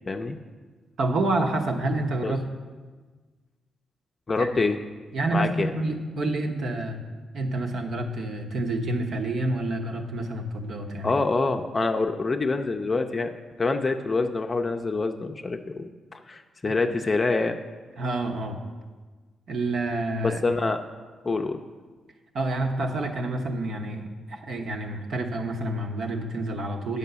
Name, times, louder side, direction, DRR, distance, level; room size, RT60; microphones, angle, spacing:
voice 1, 0.1-0.4 2.2-2.3 4.3-4.8 5.3-5.7 11.0-13.3 13.6-17.6 20.2-20.8 21.2-21.6, left 3 dB, 30° left, 5 dB, 0.5 m, -26 dB
voice 2, 1.0-2.4 4.4-4.5 5.1-7.0 7.3-11.1 16.7-16.8 18.0-18.6 19.5-20.4 22.3-27.0, right 2 dB, 65° right, 4 dB, 1.0 m, -28 dB
9.4 x 5.4 x 6.8 m, 1.4 s
cardioid pair, 105°, 0 cm